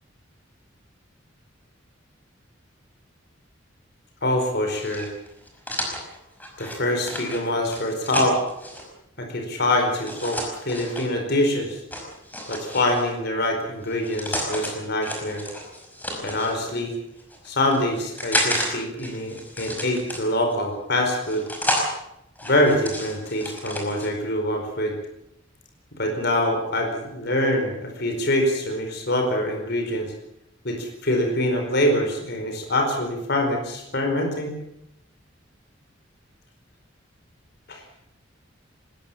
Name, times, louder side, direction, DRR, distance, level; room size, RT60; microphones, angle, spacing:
voice 1, 4.2-5.1 6.6-8.4 9.2-11.8 12.5-15.4 16.2-17.0 17.4-21.5 22.4-25.0 26.0-30.1 30.6-34.6 37.7-37.8, left 1 dB, 55° left, 3 dB, 4.7 m, -24 dB
sound 1, 4.7-8.8 10.0-11.1 11.9-13.1 13.8-14.7 15.0-16.5 17.2-18.7 19.0-20.5 21.1-21.9 22.4-24.1, left 1 dB, 10° left, 5.4 m, -31 dB
20.5 x 20.0 x 7.3 m, 0.81 s
head